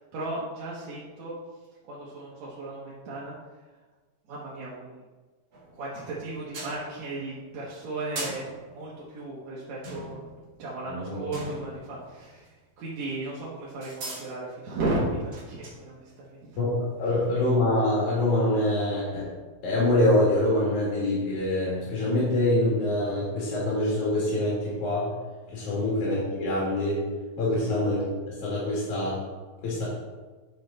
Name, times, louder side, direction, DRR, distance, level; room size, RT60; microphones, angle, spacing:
voice 1, 0.1-1.3 1.9-3.3 4.3-5.0 5.7-8.5 8.7-10.2 10.6-16.6 25.6-25.8 27.6-27.7, right 2 dB, 70° right, -6 dB, 2.4 m, -35 dB
sound 1, 5.5-6.1 6.5-7.3 8.2-9.1 9.8-12.7 13.1-13.2 13.8-14.3 15.1-15.9 17.2-17.3, right 2 dB, 45° right, 2.1 m, -40 dB
voice 2, 10.9-11.2 16.6-16.7 17.0-19.3 19.6-25.1 25.5-27.0 27.4-29.2 29.6-29.8, left 1 dB, 85° left, -7 dB, 3.4 m, -25 dB
9.5 x 5.4 x 3.9 m, 1.3 s
omnidirectional pair, 3.3 m